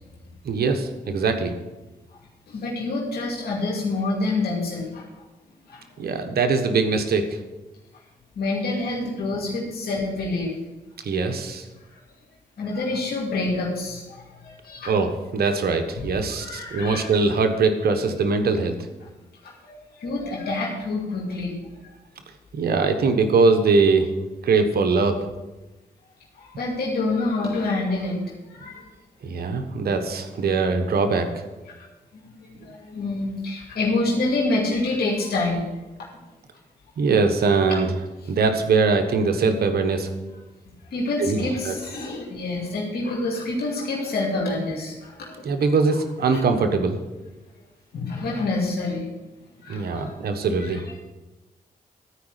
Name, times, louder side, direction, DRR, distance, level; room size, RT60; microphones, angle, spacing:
voice 1, 0.4-1.6 6.0-7.2 11.0-11.6 14.9-18.8 22.5-24.1 24.4-25.2 29.2-31.4 37.0-37.9 38.3-40.1 41.2-41.7 45.4-47.0 49.7-50.8, right 4 dB, 75° right, 6 dB, 1.2 m, -22 dB
voice 2, 2.5-5.2 5.7-6.0 8.4-10.5 12.6-14.9 16.0-16.1 16.4-17.1 19.0-19.1 19.4-21.5 26.4-28.9 31.7-35.7 36.0-36.1 40.9-45.4 46.3-46.4 47.9-49.1 49.6-50.2 50.6-51.0, left 2 dB, 85° left, -2 dB, 2.4 m, -27 dB
13.0 x 4.9 x 8.2 m, 1.1 s
cardioid pair, 65°, 16 cm